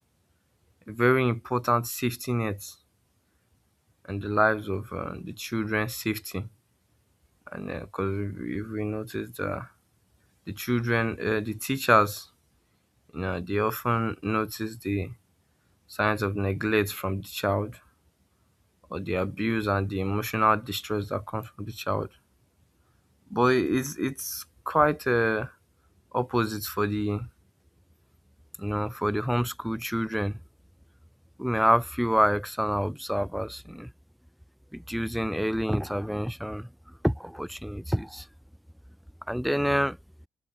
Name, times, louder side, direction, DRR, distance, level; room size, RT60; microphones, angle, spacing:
voice 1, 0.9-2.7 4.1-6.5 7.5-9.7 10.5-12.3 13.1-15.1 15.9-17.8 18.9-22.1 23.3-25.5 26.1-27.3 28.6-30.4 31.4-33.9 34.7-36.7 37.0-38.3 39.3-40.0, equal, ahead, 2.0 m, -27 dB
cardioid pair, 110°, 0 cm